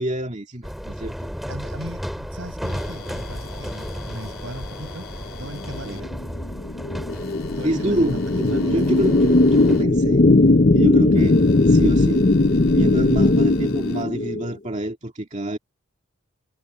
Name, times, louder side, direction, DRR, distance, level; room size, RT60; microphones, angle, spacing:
voice 1, 0.0-1.3 5.9-6.0 7.6-10.2 10.7-12.3 12.7-15.6, right 1 dB, 35° right, 2.2 m, -27 dB
sound 1, 0.6-9.8, equal, ahead, 3.7 m, -34 dB
voice 2, 1.5-6.2 7.6-8.9, right 1 dB, 65° right, 7.3 m, -38 dB
sound 2, 2.6-6.0 7.1-9.8 11.2-14.0, left 5 dB, 80° left, 3.4 m, -44 dB
sound 3, 5.7-14.5, left 2 dB, 40° left, 0.6 m, -18 dB
head